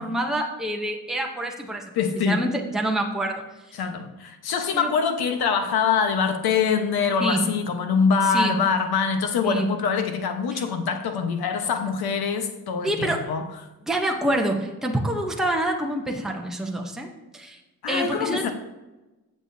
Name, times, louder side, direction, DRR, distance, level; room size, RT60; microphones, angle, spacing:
voice 1, 0.0-3.4 4.7-4.9 7.2-7.5 8.2-8.6 9.4-9.7 10.5-10.6 12.8-13.2 13.9-17.6 17.9-18.5, right 1 dB, ahead, 0.8 m, -26 dB
voice 2, 1.9-2.5 3.7-13.5 17.8-18.5, left 6 dB, 80° left, 1.1 m, -24 dB
15.0 x 7.2 x 2.7 m
wide cardioid pair, 175°, 37 cm